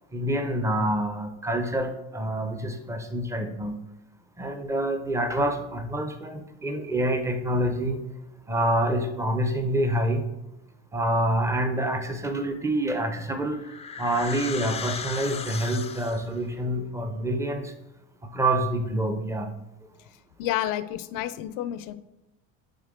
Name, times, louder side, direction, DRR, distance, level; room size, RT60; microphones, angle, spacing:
voice 1, 0.1-3.8 4.4-8.0 8.5-10.2 10.9-13.6 14.0-17.6 18.3-19.5, right 1 dB, 10° right, 6 dB, 0.8 m, -27 dB
sound 1, 13.0-16.4, left 6 dB, 15° left, 0.5 m, -36 dB
voice 2, 20.4-21.9, left 12 dB, 65° left, 13 dB, 0.6 m, -30 dB
8.9 x 4.3 x 3.7 m, 0.93 s
supercardioid pair, 105°, 36 cm